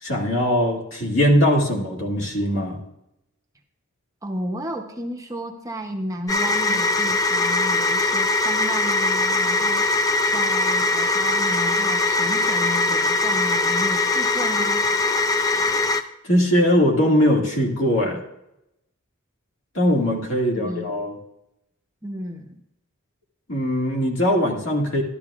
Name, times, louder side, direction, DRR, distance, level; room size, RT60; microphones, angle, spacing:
voice 1, 0.0-2.8 16.2-18.2 19.7-21.1 23.5-25.0, equal, 60° left, -1 dB, 2.0 m, -20 dB
voice 2, 4.2-14.9 20.4-20.9 22.0-22.6, equal, 15° right, 2 dB, 0.7 m, -33 dB
sound 1, 6.3-16.0, left 2 dB, 15° left, 0.3 m, -21 dB
12.5 x 12.0 x 2.4 m, 0.86 s
head